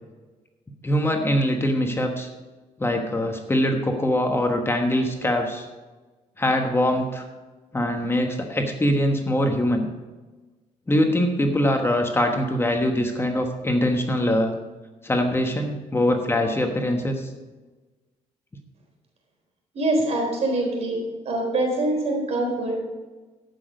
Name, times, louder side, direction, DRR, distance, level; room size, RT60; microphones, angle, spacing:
voice 1, 0.8-2.3 2.8-5.7 6.4-7.2 7.7-9.9 10.9-14.6 15.0-17.3, left 1 dB, 20° left, 4 dB, 1.2 m, -23 dB
voice 2, 19.7-21.0 21.3-22.8, right 2 dB, 55° right, 1 dB, 4.0 m, -24 dB
14.5 x 6.3 x 5.2 m, 1.2 s
cardioid pair, 105°, 13 cm